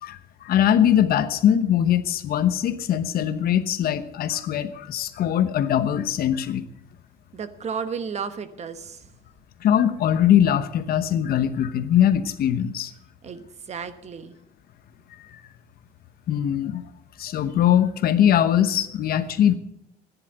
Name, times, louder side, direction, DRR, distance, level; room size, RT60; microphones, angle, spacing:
voice 1, 0.0-6.6 9.6-12.9 16.3-16.8 17.2-19.6, left 10 dB, 65° left, 11 dB, 1.0 m, -21 dB
voice 2, 7.3-9.1 13.2-14.4, right 6 dB, 40° right, 12 dB, 1.1 m, -33 dB
11.0 x 10.0 x 7.9 m, 0.81 s
cardioid pair, 110°, 17 cm